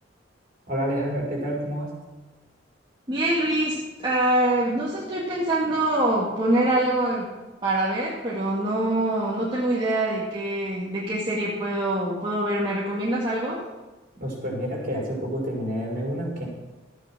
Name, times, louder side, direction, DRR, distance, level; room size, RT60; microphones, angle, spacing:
voice 1, 0.7-1.9 14.1-16.5, equal, 45° right, -3 dB, 5.4 m, -28 dB
voice 2, 3.1-7.3 7.6-13.6, right 1 dB, 25° right, -6 dB, 2.0 m, -24 dB
13.0 x 9.6 x 6.1 m, 1.2 s
head